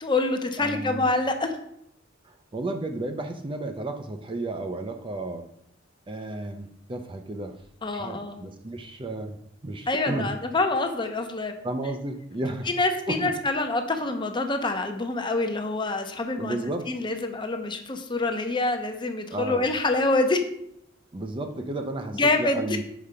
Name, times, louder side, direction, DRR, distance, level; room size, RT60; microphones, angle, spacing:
voice 1, 0.0-1.5 7.8-8.4 9.9-11.5 12.7-16.6 16.9-20.4 22.1-22.8, left 2 dB, 25° left, 6 dB, 0.7 m, -26 dB
voice 2, 0.6-1.1 2.2-5.4 6.1-7.6 7.9-9.4 9.6-10.3 11.6-12.7 13.1-13.3 16.4-16.9 19.3-19.7 21.1-22.8, right 2 dB, 25° right, 6 dB, 0.5 m, -33 dB
5.1 x 4.9 x 5.6 m, 0.74 s
head